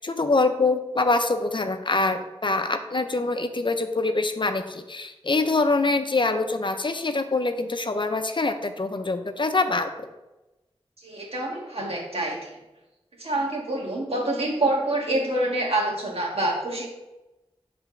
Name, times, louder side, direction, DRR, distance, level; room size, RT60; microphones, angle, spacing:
voice 1, 0.0-10.1, left 3 dB, 50° left, 7 dB, 0.5 m, -24 dB
voice 2, 11.0-12.5 13.2-16.9, right 1 dB, 70° right, -2 dB, 1.6 m, -26 dB
5.9 x 3.4 x 5.6 m, 1.0 s
wide cardioid pair, 55°, 11 cm